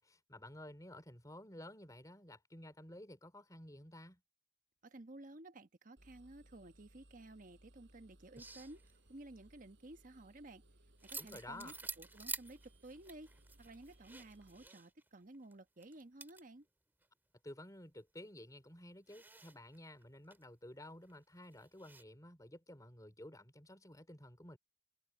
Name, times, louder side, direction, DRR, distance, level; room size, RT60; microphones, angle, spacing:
voice 1, 0.0-4.2 11.2-11.7 17.4-24.6, left 1 dB, 20° left, 3.6 m, -53 dB
voice 2, 4.8-10.6 11.0-13.3 13.6-16.7, right 2 dB, 50° right, 1.2 m, -54 dB
Engine, 6.0-14.7, right 1 dB, 80° right, 7.1 m, -65 dB
sound 1, 8.4-9.1 11.0-15.1 15.3-15.6 15.8-16.4 17.0-17.1 19.1-20.4 21.1-21.2 21.5-22.0, right 3 dB, 10° right, 2.0 m, -49 dB
head